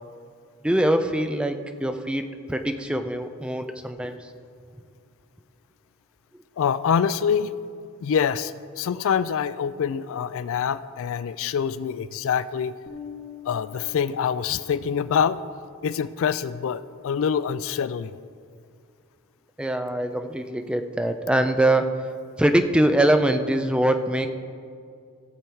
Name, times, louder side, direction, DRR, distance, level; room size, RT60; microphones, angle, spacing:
voice 1, 0.6-4.3 19.6-22.0 22.4-24.3, right 1 dB, 5° right, 7 dB, 0.4 m, -23 dB
voice 2, 6.6-7.5 8.0-12.7 13.4-15.4 15.8-18.1, left 7 dB, 65° left, 15 dB, 0.3 m, -25 dB
Bass guitar, 12.9-15.3, left 8 dB, 15° left, 1.0 m, -43 dB
16.0 x 7.0 x 4.5 m, 2.3 s
head